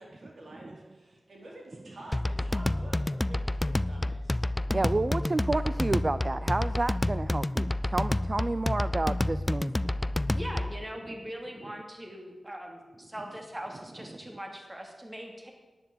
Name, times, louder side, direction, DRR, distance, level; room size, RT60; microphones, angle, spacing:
voice 1, 0.0-4.4, right 1 dB, 70° right, -1 dB, 4.3 m, -49 dB
sound 1, 2.1-10.8, left 1 dB, 20° left, 0.3 m, -29 dB
voice 2, 4.7-9.8 10.1-10.3 14.1-14.2, right 2 dB, 35° right, 13 dB, 0.5 m, -30 dB
voice 3, 10.3-15.5, equal, 20° right, 2 dB, 2.7 m, -41 dB
11.0 x 9.5 x 8.6 m, 1.2 s
wide cardioid pair, 75°, 0 cm